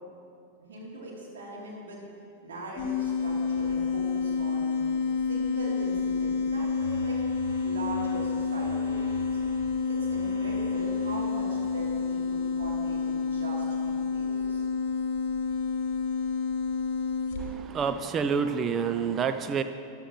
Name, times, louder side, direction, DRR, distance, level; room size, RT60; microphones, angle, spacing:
voice 1, 0.6-2.0 2.4-4.8 5.3-7.2 7.6-9.4 9.8-14.7, right 1 dB, 65° right, -5 dB, 3.1 m, -41 dB
sound 1, 2.8-17.5, left 5 dB, 50° left, 1.3 m, -29 dB
sound 2, 6.8-11.9, right 1 dB, 90° right, 3.1 m, -44 dB
voice 2, 17.7-19.6, right 6 dB, 25° right, 9 dB, 0.4 m, -27 dB
14.5 x 11.0 x 3.1 m, 2.5 s
figure-of-eight pair, 90°, 0 cm